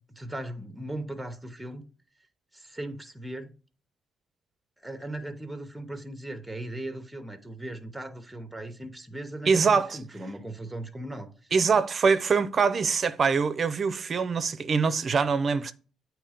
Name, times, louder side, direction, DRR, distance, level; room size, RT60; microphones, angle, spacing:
voice 1, 0.2-1.8 2.5-3.5 4.8-11.5, right 1 dB, 5° right, 0.8 m, -38 dB
voice 2, 9.5-10.0 11.5-15.7, right 5 dB, 45° right, 0.5 m, -24 dB
8.5 x 3.1 x 5.0 m
cardioid pair, 90°, 0 cm